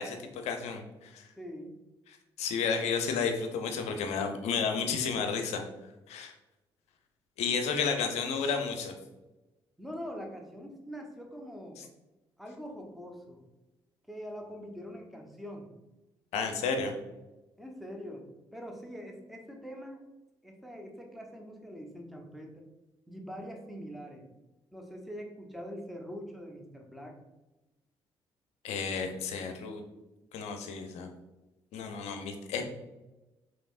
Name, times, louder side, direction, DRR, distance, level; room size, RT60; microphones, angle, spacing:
voice 1, 0.0-1.3 2.4-5.6 6.1-6.3 7.4-8.9 16.3-16.9 28.6-29.8 30.3-31.1 31.7-32.6, left 5 dB, 60° left, 5 dB, 0.6 m, -32 dB
voice 2, 1.4-1.7 9.8-11.8 12.4-13.4 14.1-15.7 16.7-16.8 17.6-18.2 18.5-20.0 20.4-22.7 23.1-24.3 24.7-27.2, equal, ahead, 1 dB, 0.9 m, -43 dB
5.1 x 3.1 x 2.5 m, 1.0 s
figure-of-eight pair, 45°, 13 cm